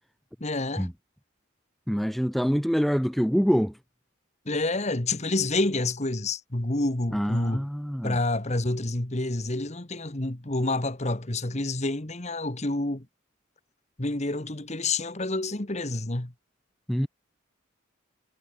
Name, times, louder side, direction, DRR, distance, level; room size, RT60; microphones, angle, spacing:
voice 1, 0.4-0.9 4.4-7.7 8.0-13.1 14.0-16.3, left 2 dB, 35° left, 1.6 m, -28 dB
voice 2, 1.9-3.8 7.1-8.2 16.9-17.1, equal, ahead, 0.8 m, -25 dB
head